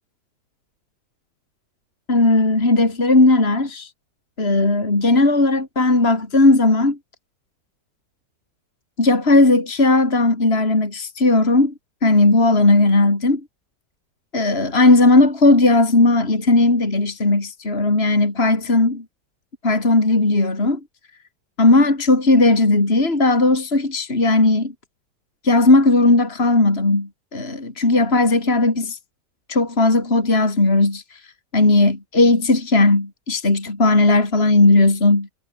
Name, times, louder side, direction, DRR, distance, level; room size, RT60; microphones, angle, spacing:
voice 1, 2.1-3.9 4.4-7.0 9.0-11.7 12.0-13.4 14.3-19.0 19.6-20.8 21.6-24.7 25.4-29.0 29.5-31.0 31.5-35.3, left 2 dB, 35° left, 4.0 m, -16 dB
omnidirectional pair, 1.8 m